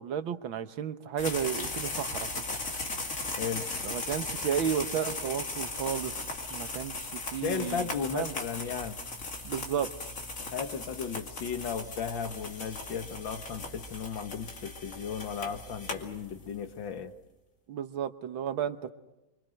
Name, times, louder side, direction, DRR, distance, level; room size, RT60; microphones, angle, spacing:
voice 1, 0.0-2.3 3.8-6.2 6.5-8.3 9.4-9.9 17.7-18.9, right 8 dB, 75° right, 10 dB, 1.9 m, -33 dB
sound 1, 1.2-16.6, left 2 dB, 40° left, 2.8 m, -37 dB
voice 2, 3.4-3.7 7.4-9.0 10.4-17.1, left 6 dB, 65° left, 8 dB, 2.2 m, -35 dB
28.0 x 25.5 x 6.5 m, 1.0 s
omnidirectional pair, 2.2 m